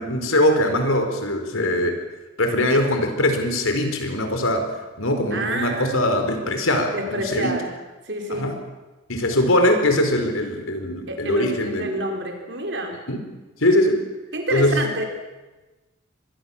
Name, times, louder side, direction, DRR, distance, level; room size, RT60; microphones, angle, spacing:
voice 1, 0.0-2.0 2.4-4.7 5.0-7.6 8.3-8.6 9.1-12.0 13.1-13.2 13.6-14.0 14.5-14.8, left 1 dB, 85° left, 5 dB, 4.5 m, -21 dB
voice 2, 5.3-6.1 6.9-7.7 8.1-8.5 11.1-13.0 14.3-15.0, right 1 dB, 60° right, 3 dB, 4.6 m, -28 dB
25.0 x 21.5 x 7.3 m, 1.1 s
head